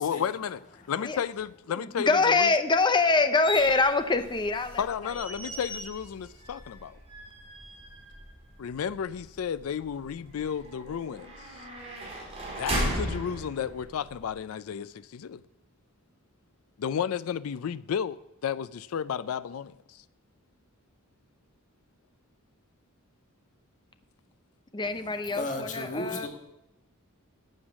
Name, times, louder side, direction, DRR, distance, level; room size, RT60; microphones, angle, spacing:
voice 1, 0.0-0.6 0.9-2.5 4.8-7.0 8.6-11.3 12.6-15.4 16.8-20.0, left 8 dB, 85° left, 0.4 m, -32 dB
voice 2, 1.7-5.1 5.4-5.6 24.7-26.3, left 3 dB, 20° left, 0.7 m, -25 dB
sound 1, 3.4-14.3, equal, 30° right, 4.8 m, -38 dB
voice 3, 24.8-26.3, left 2 dB, 35° left, 1.5 m, -36 dB
12.0 x 8.0 x 6.1 m
head